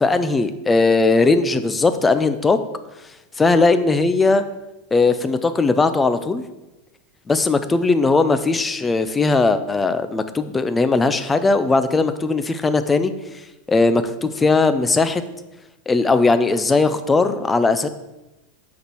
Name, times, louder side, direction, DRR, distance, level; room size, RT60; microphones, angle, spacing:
voice 1, 0.0-2.6 3.4-4.4 4.9-6.4 7.3-13.1 13.7-15.2 15.9-17.9, left 3 dB, 10° left, 11 dB, 0.4 m, -18 dB
8.5 x 4.2 x 6.1 m, 1.0 s
supercardioid pair, 175°, 0 cm